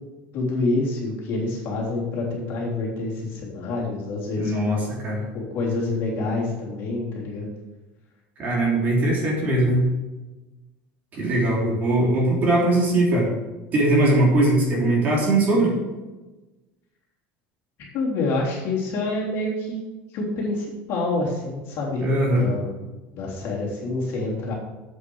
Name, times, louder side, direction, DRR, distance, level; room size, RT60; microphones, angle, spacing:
voice 1, 0.3-4.9 5.3-7.5 17.9-19.8 20.1-22.0 22.3-22.8 23.1-24.5, left 2 dB, 45° left, -3 dB, 3.3 m, -27 dB
voice 2, 4.4-4.8 5.0-5.2 8.4-9.9 11.1-13.3 13.7-15.7 22.0-22.5, right 1 dB, 30° right, -3 dB, 3.5 m, -20 dB
8.4 x 8.0 x 6.3 m, 1.1 s
cardioid pair, 165°, 5 cm